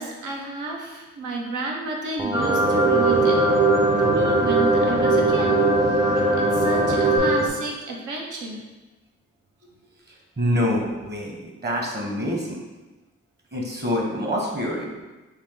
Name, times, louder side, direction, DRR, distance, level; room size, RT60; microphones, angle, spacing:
voice 1, 0.0-3.4 4.0-5.5 5.8-6.0 6.4-8.6, right 3 dB, 80° right, -1 dB, 0.8 m, -31 dB
sound 1, 2.2-7.2, left 1 dB, 15° right, 0.4 m, -25 dB
sound 2, 2.3-7.5, right 3 dB, 55° right, 1.3 m, -21 dB
voice 2, 10.4-11.4 11.6-12.6 13.5-15.0, equal, 35° right, -1 dB, 1.1 m, -25 dB
3.5 x 2.5 x 3.7 m, 1.2 s
supercardioid pair, 50°, 30 cm